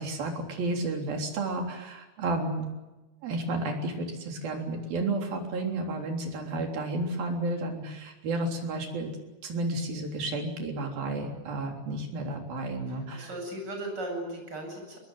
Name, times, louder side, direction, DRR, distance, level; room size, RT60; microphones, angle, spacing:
voice 1, 0.0-2.7 3.2-9.1 9.4-13.3, right 2 dB, 70° right, 2 dB, 5.4 m, -32 dB
voice 2, 12.9-15.0, right 1 dB, 25° right, 2 dB, 8.5 m, -37 dB
22.0 x 21.5 x 9.5 m, 1.0 s
omnidirectional pair, 4.4 m